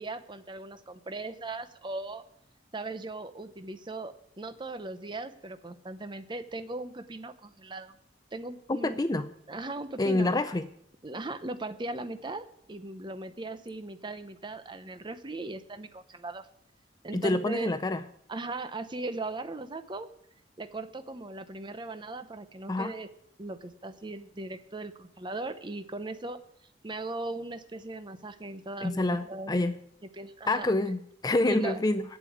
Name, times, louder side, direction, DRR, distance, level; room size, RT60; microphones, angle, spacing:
voice 1, 0.0-2.2 2.7-8.0 8.3-9.0 9.5-10.3 11.0-16.5 17.0-17.7 18.3-20.1 20.6-23.1 23.4-26.4 26.8-29.7 30.1-30.7 31.5-31.8, right 2 dB, 25° right, 10 dB, 0.7 m, -38 dB
voice 2, 8.8-9.3 10.0-10.6 17.1-18.0 22.7-23.0 28.8-29.7 30.5-32.0, left 2 dB, 20° left, 10 dB, 0.4 m, -27 dB
8.4 x 8.3 x 8.6 m, 0.72 s
head